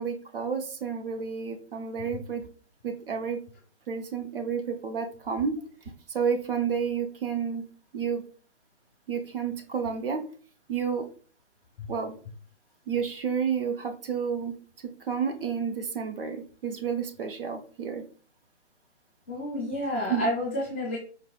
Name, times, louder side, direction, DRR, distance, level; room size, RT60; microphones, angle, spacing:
voice 1, 0.0-2.5 2.8-3.4 3.9-7.6 7.9-8.2 9.1-10.2 10.7-11.1 11.9-12.2 12.9-18.0 20.1-20.3, right 6 dB, 50° right, 6 dB, 0.6 m, -31 dB
voice 2, 19.3-21.0, left 1 dB, 10° left, -7 dB, 0.4 m, -29 dB
4.6 x 2.1 x 2.2 m, 0.40 s
hypercardioid pair, 150°, 35 cm